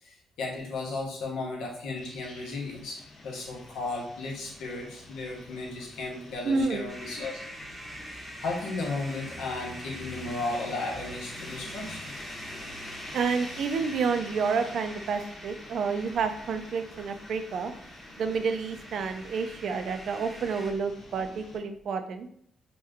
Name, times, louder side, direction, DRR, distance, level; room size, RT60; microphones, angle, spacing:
voice 1, 0.0-7.4 8.4-12.1, left 3 dB, 80° left, -2 dB, 0.9 m, -35 dB
sound 1, 2.0-21.6, left 2 dB, 55° left, 0.7 m, -47 dB
voice 2, 6.4-6.9 13.1-17.7 18.2-22.3, right 5 dB, 65° right, 7 dB, 0.4 m, -29 dB
sound 2, 6.9-20.7, right 1 dB, 10° right, 0.8 m, -45 dB
2.9 x 2.3 x 3.4 m, 0.64 s
cardioid pair, 90°, 0 cm